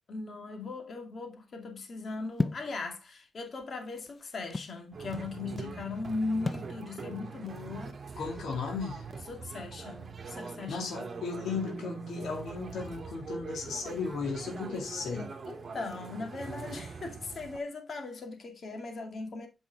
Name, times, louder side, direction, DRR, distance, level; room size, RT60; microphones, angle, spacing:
voice 1, 0.1-8.0 9.3-11.1 15.5-19.5, left 3 dB, 55° left, 2.4 m, -38 dB
sound 1, 2.4-2.7 3.6-4.8 6.5-6.7, left 3 dB, 35° left, 0.5 m, -32 dB
sound 2, 4.9-17.6, right 4 dB, 50° right, 1.6 m, -43 dB
voice 2, 8.2-9.0 10.7-15.3, left 4 dB, 85° left, 2.1 m, -35 dB
8.6 x 5.4 x 3.5 m
cardioid pair, 75°, 0 cm